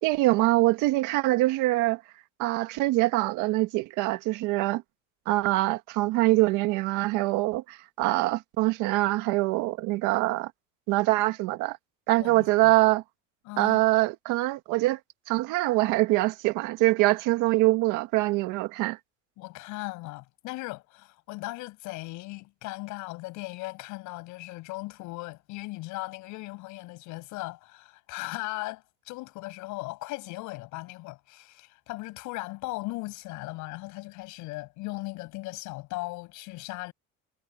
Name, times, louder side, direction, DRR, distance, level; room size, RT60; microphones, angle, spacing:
voice 1, 0.0-2.0 2.4-4.8 5.3-10.5 10.9-11.8 12.1-13.0 13.6-15.0 15.3-19.0, right 19 dB, 75° right, 1.9 m, -24 dB
voice 2, 12.2-12.7 13.4-13.8 19.4-36.9, left 21 dB, 70° left, 7.2 m, -38 dB
cardioid pair, 170°, 31 cm